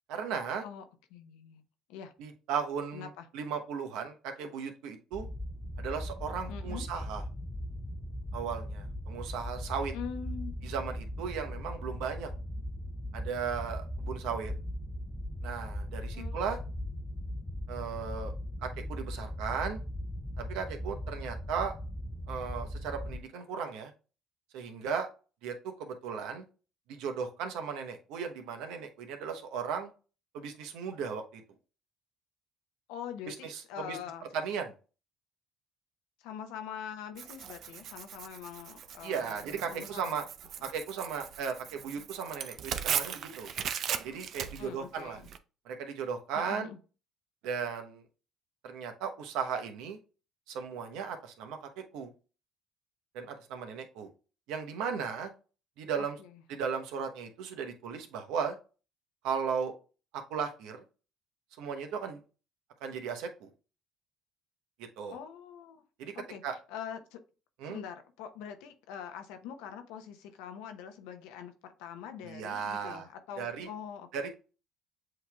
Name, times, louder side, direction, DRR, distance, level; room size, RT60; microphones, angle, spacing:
voice 1, 0.1-0.6 2.2-5.3 5.8-7.2 8.3-9.9 10.6-12.3 13.1-14.5 15.4-16.6 17.7-18.3 18.6-19.8 20.4-21.7 22.3-23.9 24.5-25.1 25.4-26.4 26.9-29.9 30.3-31.4 33.3-34.0 34.3-34.7 39.0-40.2 40.6-43.5 44.0-45.2 45.6-46.7 47.4-48.0 48.6-50.0 50.5-51.6 51.9-52.1 53.1-54.1 54.5-55.3 55.8-56.2 56.5-58.6 59.2-59.7 60.1-60.8 61.6-62.2 62.8-63.5 65.0-65.2 66.0-66.1 66.4-66.5 67.6-67.8 72.2-73.1 73.4-73.7 74.1-74.3, right 6 dB, 80° right, 0.9 m, -36 dB
voice 2, 1.1-1.6 1.9-2.1 2.9-3.3 6.5-6.8 9.9-10.5 16.1-16.4 32.9-34.2 36.2-39.4 39.7-40.1 44.6-45.2 46.4-46.8 56.0-56.3 65.1-65.8 66.1-66.4 66.7-67.2 67.6-74.3, left 8 dB, 85° left, 0.8 m, -43 dB
sound 1, 5.1-23.2, left 1 dB, 10° left, 0.5 m, -39 dB
Tearing, 37.2-45.4, right 8 dB, 60° right, 0.5 m, -38 dB
7.7 x 3.0 x 2.3 m
supercardioid pair, 80°, 0 cm